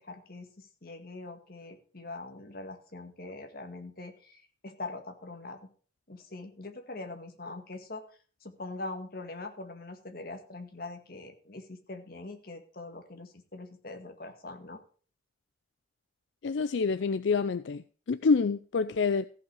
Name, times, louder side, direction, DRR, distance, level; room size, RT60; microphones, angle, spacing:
voice 1, 0.0-5.7 6.1-8.0 8.4-14.8, left 2 dB, 50° left, 1.9 m, -43 dB
voice 2, 16.4-19.2, left 4 dB, 80° left, 0.5 m, -27 dB
15.0 x 5.7 x 6.3 m
head